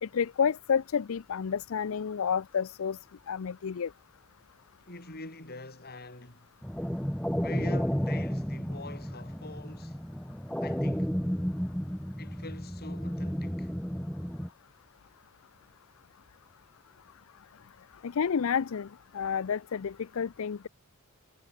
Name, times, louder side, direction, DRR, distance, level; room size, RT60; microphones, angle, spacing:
voice 1, 0.0-3.0 3.3-3.9 18.0-18.9 19.1-20.7, left 7 dB, 65° left, 0.5 m, -30 dB
voice 2, 4.9-6.5 7.4-10.0 10.6-11.2 12.2-13.7, left 2 dB, 45° left, 5.6 m, -45 dB
sound 1, 6.6-14.5, equal, 5° left, 1.7 m, -32 dB
head